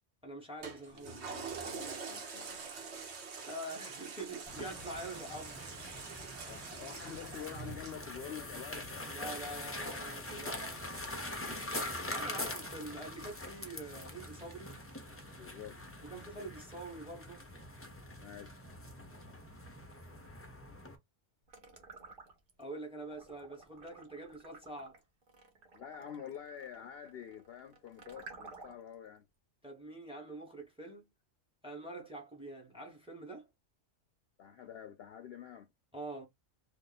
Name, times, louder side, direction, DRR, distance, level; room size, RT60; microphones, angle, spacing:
voice 1, 0.2-1.1 3.5-5.6 9.1-10.8 12.1-14.8 16.0-17.4 22.6-25.0 29.6-31.1 31.6-33.5 35.9-36.3, right 2 dB, 5° right, 1.1 m, -45 dB
Toilet flush, 0.6-15.4 15.9-16.0, right 5 dB, 65° right, 1.2 m, -48 dB
voice 2, 1.1-2.7 4.8-5.2 6.5-9.1 11.4-12.5 15.3-15.8 18.2-18.7 25.7-29.2 34.4-35.7, left 9 dB, 65° left, 0.7 m, -48 dB
sound 1, 4.5-21.0, left 1 dB, 15° left, 0.5 m, -44 dB
sound 2, 21.5-22.6 23.0-28.9, right 3 dB, 50° right, 1.1 m, -54 dB
2.9 x 2.6 x 4.0 m
omnidirectional pair, 1.3 m